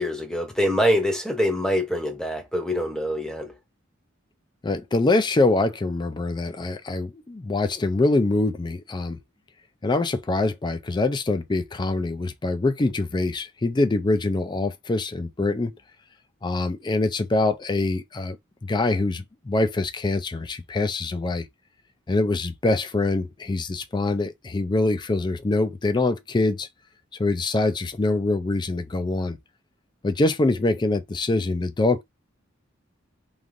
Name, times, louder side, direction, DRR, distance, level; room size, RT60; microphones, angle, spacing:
voice 1, 0.0-3.5, equal, 5° left, 0.7 m, -24 dB
voice 2, 4.6-9.2 9.8-15.8 16.4-18.4 18.6-21.5 22.1-26.7 27.2-29.4 30.0-32.0, left 2 dB, 20° left, 0.4 m, -24 dB
3.2 x 2.5 x 2.5 m
head